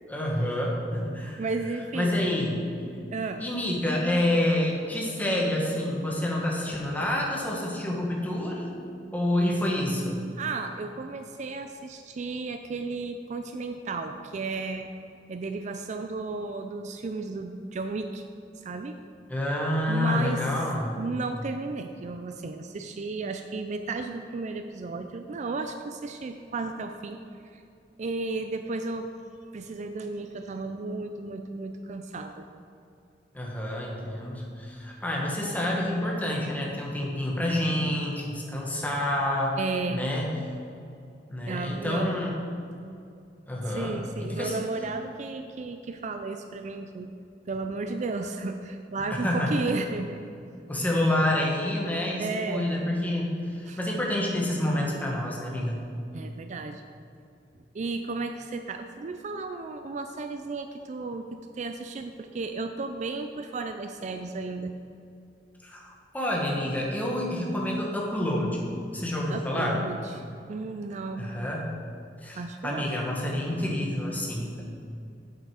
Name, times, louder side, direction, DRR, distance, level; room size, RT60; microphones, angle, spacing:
voice 1, 0.1-1.4 1.9-2.7 3.4-8.7 9.1-10.2 19.3-20.9 33.3-39.6 39.9-40.3 41.3-42.3 43.5-44.6 49.1-49.6 50.7-55.8 65.6-65.9 66.1-68.6 68.9-69.8 71.2-71.7 72.2-74.6, left 1 dB, 10° left, -3 dB, 1.4 m, -28 dB
voice 2, 1.4-2.1 3.1-3.4 10.4-14.9 15.3-18.2 18.6-18.9 19.9-20.4 21.0-27.2 27.4-27.6 28.0-29.1 29.5-32.5 39.6-40.0 41.5-42.1 43.6-47.1 47.5-50.2 52.2-52.7 53.7-53.8 56.1-56.9 57.7-61.3 61.5-64.7 69.3-70.2 70.5-71.3 72.4-72.9, right 3 dB, 40° right, 7 dB, 0.4 m, -33 dB
7.9 x 7.7 x 4.8 m, 2.6 s
head